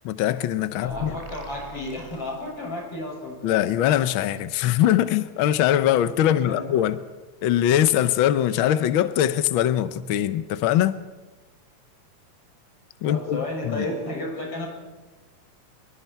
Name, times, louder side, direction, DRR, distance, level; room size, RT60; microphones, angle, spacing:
voice 1, 0.0-1.2 3.4-7.0 7.4-11.0 13.0-13.9, left 11 dB, 80° left, 12 dB, 1.1 m, -22 dB
voice 2, 0.8-3.7 6.2-6.6 13.1-14.7, left 1 dB, 50° left, 0 dB, 7.7 m, -32 dB
sound 1, 0.8-3.0, right 1 dB, 15° right, 1.1 m, -42 dB
26.0 x 23.5 x 4.6 m, 1.2 s
omnidirectional pair, 3.3 m